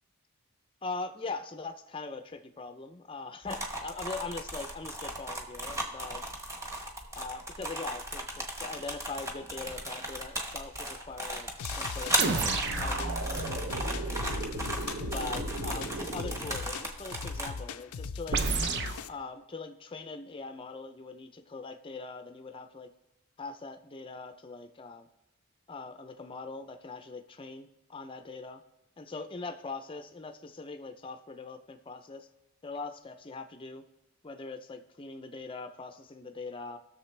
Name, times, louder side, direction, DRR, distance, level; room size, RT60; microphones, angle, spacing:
voice 1, 0.8-6.3 7.2-13.2 15.0-18.5 19.1-22.9 23.4-25.1 25.7-28.6 29.0-32.3 32.6-33.9 34.2-36.8, left 3 dB, 25° left, 7 dB, 0.5 m, -41 dB
sound 1, 3.5-17.5, equal, 15° right, 1.0 m, -36 dB
sound 2, 11.6-19.1, left 5 dB, 80° left, 0.5 m, -40 dB
sound 3, 12.2-16.5 18.3-19.0, right 3 dB, 50° right, 0.6 m, -33 dB
18.0 x 6.7 x 3.3 m, 0.97 s
head